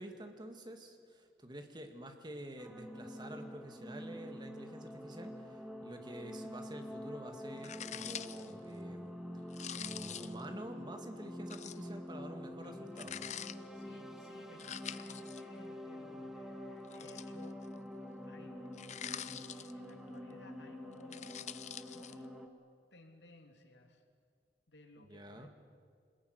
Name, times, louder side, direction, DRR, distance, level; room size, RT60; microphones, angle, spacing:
voice 1, 0.0-9.2 9.8-13.3 25.0-25.5, right 1 dB, 25° right, 5 dB, 2.2 m, -48 dB
sound 1, 2.6-22.5, equal, ahead, 1.9 m, -47 dB
sound 2, 7.6-8.5 9.5-10.4 11.5-11.9 13.0-13.5 14.6-15.4 16.8-17.7 18.7-19.9 20.9-22.1, left 10 dB, 40° left, 0.7 m, -45 dB
voice 2, 13.7-17.6 18.2-18.6 19.2-21.6 21.9-22.3 22.9-24.0 24.7-25.5, left 2 dB, 80° left, 4 dB, 3.2 m, -59 dB
26.0 x 21.0 x 9.7 m, 2.1 s
head